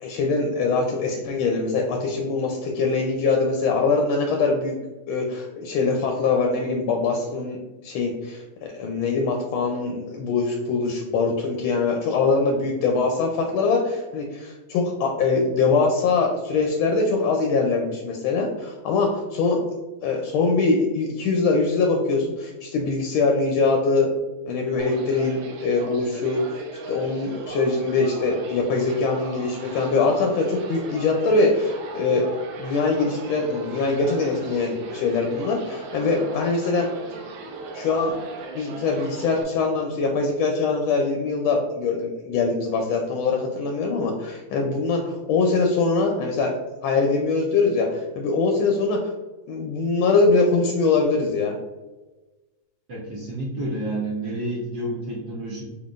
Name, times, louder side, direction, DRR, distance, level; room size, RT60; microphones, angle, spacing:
voice 1, 0.0-4.8 5.1-8.4 8.7-19.6 20.0-24.1 24.5-32.2 32.6-36.9 37.7-38.1 38.5-46.5 46.8-49.1 49.5-51.6, left 4 dB, 80° left, 2 dB, 1.4 m, -23 dB
sound 1, 24.8-39.4, right 3 dB, 75° right, 1.3 m, -38 dB
voice 2, 52.9-55.6, right 1 dB, 60° right, -5 dB, 1.3 m, -29 dB
3.9 x 3.7 x 2.4 m, 1.2 s
omnidirectional pair, 2.2 m